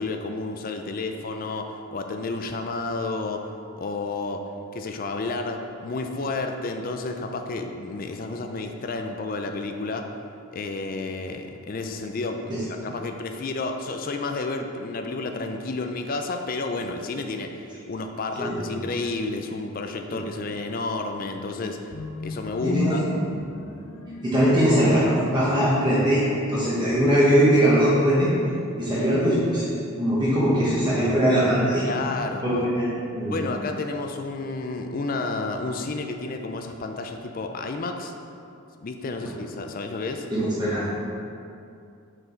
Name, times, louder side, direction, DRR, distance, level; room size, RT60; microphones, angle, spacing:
voice 1, 0.0-3.5 3.8-4.4 4.7-10.1 10.5-21.8 22.2-23.0 31.8-32.4 33.3-38.1 38.8-40.3, left 3 dB, 40° left, 5 dB, 0.4 m, -31 dB
voice 2, 18.4-18.8 22.6-23.0 24.2-26.2 26.5-28.3 28.8-29.7 30.0-31.8 32.4-32.9 33.1-33.4 40.3-40.9, equal, 20° right, -9 dB, 1.1 m, -21 dB
sound 1, 21.9-27.9, left 1 dB, 90° left, 0.7 m, -33 dB
6.6 x 4.5 x 4.4 m, 2.6 s
head